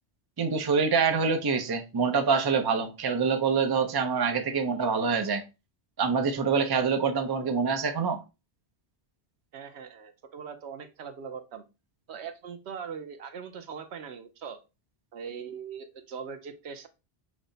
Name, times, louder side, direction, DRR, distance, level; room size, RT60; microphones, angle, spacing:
voice 1, 0.4-5.4 6.0-8.2, right 5 dB, 30° right, 0.5 m, -25 dB
voice 2, 9.5-11.6 12.1-14.6 15.1-16.9, right 6 dB, 85° right, 1.0 m, -41 dB
6.2 x 2.1 x 3.8 m
omnidirectional pair, 1.1 m